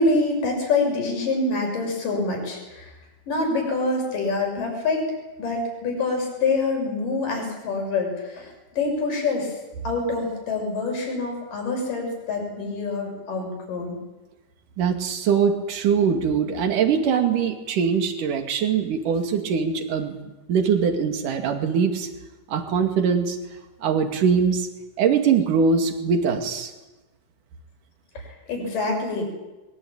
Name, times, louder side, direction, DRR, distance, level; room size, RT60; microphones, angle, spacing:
voice 1, 0.0-2.9 3.3-5.0 5.4-9.5 9.8-14.0 28.1-29.2, left 3 dB, 60° left, 1 dB, 8.3 m, -26 dB
voice 2, 14.8-20.1 20.5-22.1 22.5-23.4 23.8-24.7 25.0-26.7, right 6 dB, 60° right, 5 dB, 3.7 m, -22 dB
23.0 x 22.5 x 8.9 m, 1.1 s
omnidirectional pair, 4.4 m